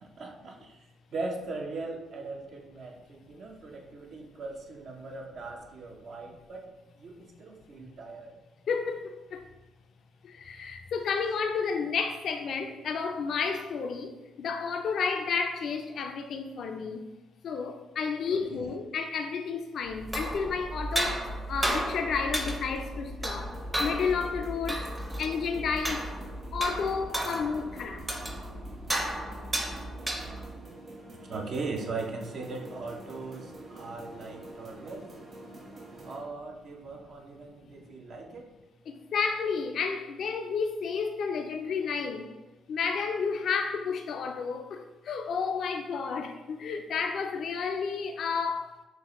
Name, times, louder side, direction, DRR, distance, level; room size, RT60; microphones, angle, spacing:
voice 1, 0.0-0.8 1.1-6.7 7.0-8.4 18.3-18.7 31.3-35.1 36.0-38.5, right 3 dB, 60° right, 2 dB, 0.6 m, -39 dB
voice 2, 8.7-9.5 10.2-17.0 17.4-24.8 25.2-26.1 26.5-28.1 38.9-42.3 42.7-48.7, left 5 dB, 65° left, 4 dB, 0.3 m, -31 dB
sound 1, 19.9-30.6, right 1 dB, 15° right, 0.6 m, -34 dB
sound 2, 23.4-36.2, right 1 dB, 45° right, 1.3 m, -47 dB
6.1 x 2.1 x 3.0 m, 1.1 s
cardioid pair, 90°, 0 cm